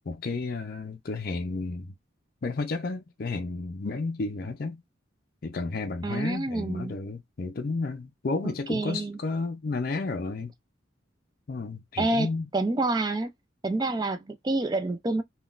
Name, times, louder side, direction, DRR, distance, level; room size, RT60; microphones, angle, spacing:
voice 1, 0.1-1.9 2.4-4.8 5.4-10.5 11.5-12.5, left 3 dB, 50° left, 0.5 m, -32 dB
voice 2, 6.0-7.0 8.4-9.2 12.0-13.3 13.6-15.2, right 2 dB, 20° right, 0.3 m, -28 dB
3.8 x 2.3 x 2.4 m
head